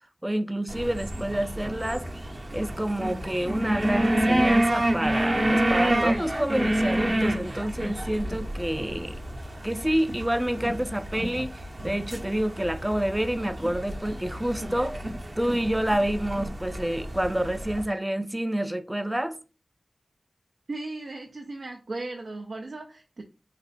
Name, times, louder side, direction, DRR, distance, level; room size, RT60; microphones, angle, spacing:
voice 1, 0.2-2.1 2.5-9.2 9.6-15.0 15.4-19.4, right 1 dB, 10° right, 0.3 m, -28 dB
sound 1, 0.7-17.8, right 1 dB, 45° right, 0.7 m, -29 dB
voice 2, 20.7-23.2, right 2 dB, 80° right, 0.4 m, -36 dB
3.2 x 2.1 x 3.9 m
wide cardioid pair, 55°, 0 cm